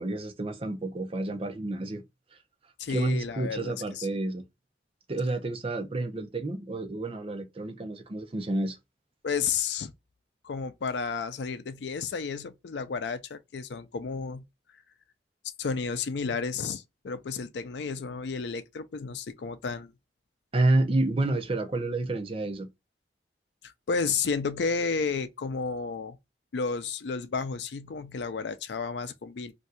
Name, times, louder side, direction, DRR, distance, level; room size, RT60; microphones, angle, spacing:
voice 1, 0.0-2.0 2.9-4.4 5.1-8.8 20.5-22.7, right 2 dB, 35° right, 0.6 m, -29 dB
voice 2, 2.8-4.1 9.2-9.9 10.4-14.4 15.6-19.9 23.6-26.2 26.5-29.5, left 5 dB, 75° left, 0.4 m, -32 dB
2.6 x 2.3 x 4.0 m
head